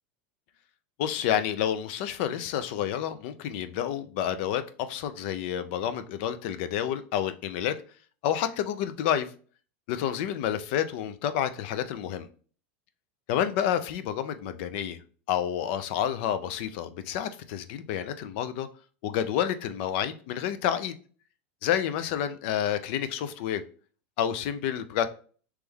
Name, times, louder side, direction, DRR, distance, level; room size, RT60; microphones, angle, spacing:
voice 1, 1.0-7.8 8.2-9.3 9.9-12.3 13.3-15.0 15.3-18.7 19.0-21.0 21.6-23.6 24.2-25.1, left 10 dB, 55° left, 0.5 m, -29 dB
3.4 x 3.1 x 3.5 m
supercardioid pair, 150°, 7 cm